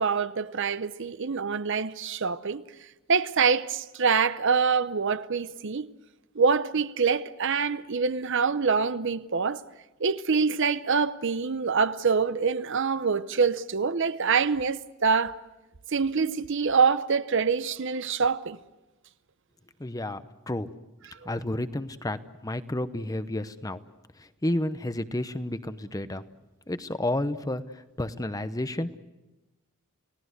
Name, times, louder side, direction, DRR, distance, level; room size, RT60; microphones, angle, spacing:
voice 1, 0.0-2.6 3.1-5.9 6.3-9.6 10.0-15.4 15.9-18.6 21.2-21.3, right 5 dB, 60° right, 0.8 m, -25 dB
voice 2, 19.8-20.7 21.2-23.8 24.2-26.2 26.7-28.9, left 1 dB, 15° left, 0.8 m, -31 dB
30.0 x 18.0 x 8.1 m
head